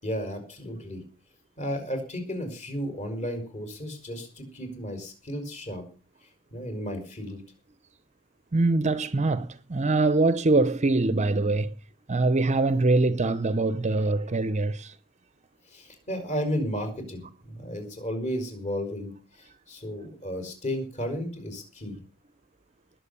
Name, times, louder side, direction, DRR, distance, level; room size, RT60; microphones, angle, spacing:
voice 1, 0.0-1.0 1.6-5.8 6.5-7.4 15.7-22.0, equal, 35° left, 5.4 m, -33 dB
voice 2, 8.5-11.7 12.1-14.9, right 2 dB, 30° right, 0.7 m, -23 dB
20.0 x 7.7 x 6.9 m
head